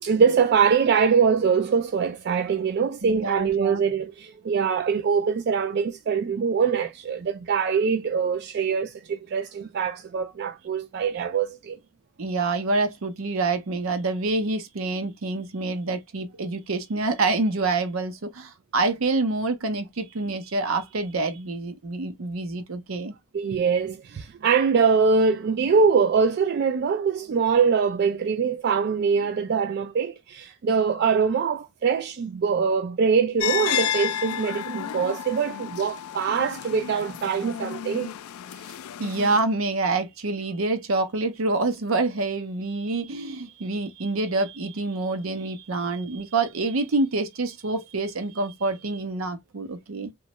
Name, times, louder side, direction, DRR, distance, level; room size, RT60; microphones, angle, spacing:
voice 1, 0.0-11.8 23.3-38.1, right 6 dB, 50° right, 0.3 m, -23 dB
voice 2, 3.0-3.8 12.2-23.1 39.0-50.1, right 3 dB, 75° right, 0.7 m, -27 dB
sound 1, 33.4-39.4, left 10 dB, 90° left, 0.3 m, -31 dB
3.1 x 2.3 x 2.9 m
head